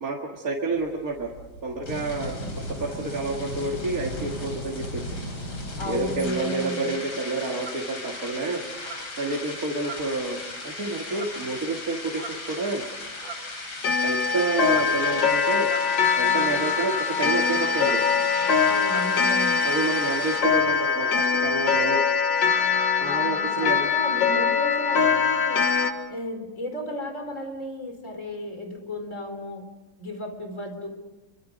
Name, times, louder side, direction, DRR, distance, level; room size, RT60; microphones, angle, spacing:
voice 1, 0.0-1.3 1.6-2.4 2.8-4.9 5.8-8.6 9.2-10.4 10.6-12.8 14.0-15.7 16.2-18.0 19.7-22.0 23.0-23.9, right 3 dB, 45° right, -1 dB, 2.4 m, -29 dB
sound 1, 0.7-20.4, left 2 dB, 85° left, 5.6 m, -37 dB
voice 2, 5.8-7.0 18.6-19.7 23.1-25.7 26.1-29.6 30.0-30.9, left 1 dB, 35° left, 4 dB, 4.5 m, -34 dB
sound 2, 7.6-7.9 8.7-9.1 9.7-10.3 11.0-11.5 12.1-12.5 13.1-13.6 14.6-15.0 15.6-16.2 16.6-17.0 17.7-18.1 18.3-18.5 18.8-19.2, right 5 dB, 75° right, 5.1 m, -41 dB
Clock, 13.8-25.9, left 6 dB, 65° left, 2.1 m, -23 dB
29.0 x 24.5 x 5.3 m, 1.1 s
omnidirectional pair, 2.2 m